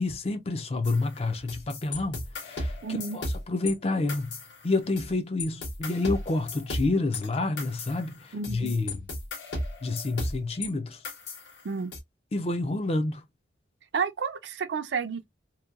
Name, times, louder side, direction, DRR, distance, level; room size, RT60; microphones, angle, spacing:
voice 1, 0.0-4.3 4.6-8.9 9.8-11.0 12.3-13.2, left 2 dB, 30° left, 0.4 m, -29 dB
sound 1, 0.8-3.7 4.1-5.1 5.4-10.7 11.0-12.0, left 1 dB, 70° left, 1.0 m, -35 dB
voice 2, 2.8-3.2 8.3-8.7 11.6-11.9 13.9-15.2, right 5 dB, 70° right, 0.4 m, -31 dB
2.8 x 2.2 x 2.3 m
head